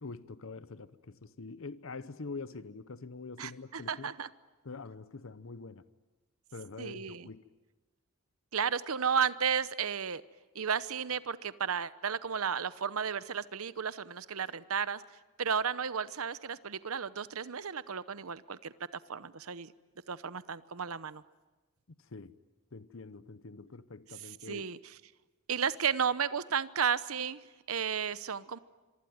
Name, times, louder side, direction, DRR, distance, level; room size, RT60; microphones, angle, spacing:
voice 1, 0.0-4.1 4.6-5.8 6.5-7.4 22.0-22.3 22.7-24.6, left 3 dB, 65° left, 15 dB, 0.8 m, -45 dB
voice 2, 3.4-4.3 6.8-7.3 8.5-10.2 10.5-15.0 15.4-18.7 19.1-19.7 20.1-21.2 24.2-25.0 25.5-28.6, right 7 dB, 85° right, 16 dB, 0.9 m, -33 dB
26.0 x 24.0 x 9.3 m, 1.2 s
head